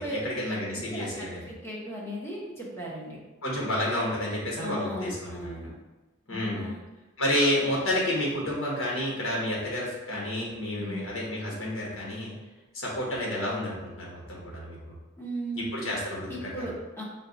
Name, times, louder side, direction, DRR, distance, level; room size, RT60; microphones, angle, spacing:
voice 1, 0.0-1.5 3.4-5.6 6.3-6.7 7.2-12.3 12.7-14.8 15.5-16.7, left 1 dB, 70° left, -4 dB, 1.3 m, -30 dB
voice 2, 0.7-3.2 4.6-5.7 6.3-6.8 10.8-11.0 15.2-15.9 16.3-17.0, right 1 dB, 10° left, -4 dB, 0.8 m, -37 dB
4.4 x 2.3 x 3.9 m, 1.1 s
head